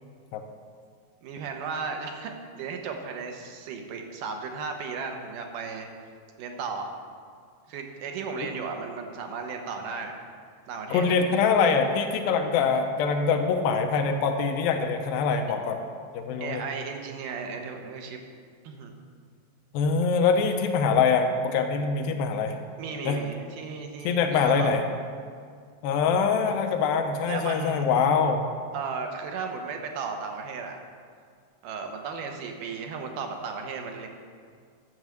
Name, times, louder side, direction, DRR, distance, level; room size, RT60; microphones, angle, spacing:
voice 1, 1.2-5.9 6.4-6.9 7.7-10.2 10.7-11.1 16.4-18.2 18.6-18.9 22.8-24.8 27.3-27.9 28.7-30.8 31.6-34.1, right 5 dB, 70° right, 4 dB, 2.4 m, -35 dB
voice 2, 10.9-15.8 16.1-16.6 19.7-22.6 23.1-23.2 24.0-24.8 25.8-28.5, left 5 dB, 80° left, 4 dB, 2.5 m, -24 dB
11.0 x 7.2 x 7.8 m, 2.1 s
omnidirectional pair, 4.4 m